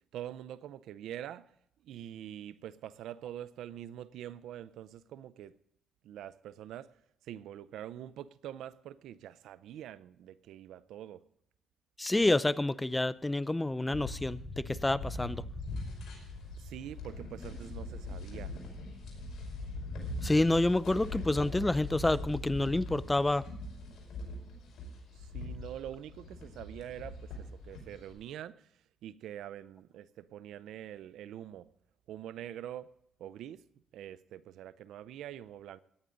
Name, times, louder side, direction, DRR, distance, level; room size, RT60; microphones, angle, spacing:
voice 1, 0.1-1.5 1.8-5.6 6.0-6.9 7.3-11.2 16.6-18.5 25.2-28.6 29.0-31.7 32.1-32.9 33.2-33.6 33.9-35.8, right 11 dB, 80° right, 0.5 m, -45 dB
voice 2, 12.0-15.4 20.2-23.5, left 2 dB, 15° left, 0.4 m, -28 dB
sound 1, 13.9-28.1, left 2 dB, 65° left, 5.4 m, -41 dB
17.5 x 10.5 x 3.8 m
cardioid pair, 90°, 0 cm